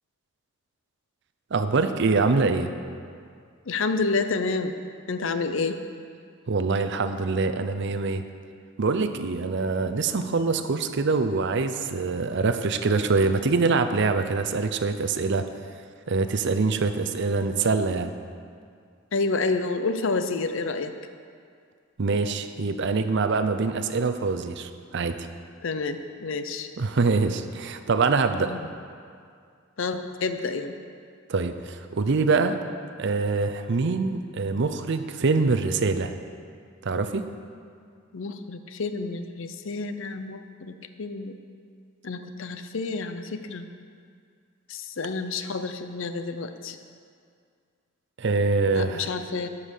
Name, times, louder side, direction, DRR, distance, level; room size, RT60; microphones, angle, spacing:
voice 1, 1.5-2.7 6.5-8.2 8.8-15.5 16.1-18.1 22.0-25.3 26.8-28.5 31.3-32.6 33.0-36.1 36.8-37.3 48.2-49.1, right 4 dB, 60° right, 9 dB, 0.6 m, -24 dB
voice 2, 3.7-4.8 5.1-5.8 19.1-20.9 25.6-26.7 28.4-28.7 29.8-30.7 38.1-41.4 42.0-43.7 44.7-46.8 48.7-49.5, left 3 dB, 65° left, 9 dB, 0.6 m, -29 dB
12.0 x 5.7 x 6.5 m, 2.2 s
head